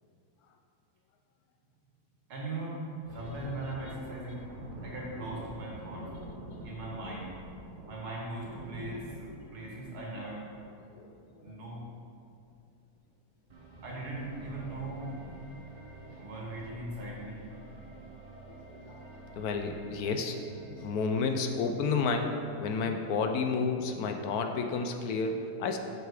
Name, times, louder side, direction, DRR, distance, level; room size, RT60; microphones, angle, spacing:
voice 1, 2.3-2.8 3.1-4.5 4.8-6.1 6.6-7.3 7.9-10.5 11.4-11.8 13.8-15.3 16.2-17.5, right 2 dB, 80° right, -3 dB, 2.1 m, -39 dB
Thunder, 2.9-11.9 12.2-12.4 12.8-13.1 13.7-14.2, right 1 dB, 60° right, 1.4 m, -47 dB
voice 2, 10.9-11.6 16.1-16.2 18.8-20.4 20.7-25.8, left 4 dB, 75° left, 5 dB, 1.1 m, -31 dB
sound 1, 13.5-22.5, right 2 dB, 35° right, 0.7 m, -50 dB
7.7 x 5.8 x 4.9 m, 2.4 s
omnidirectional pair, 1.7 m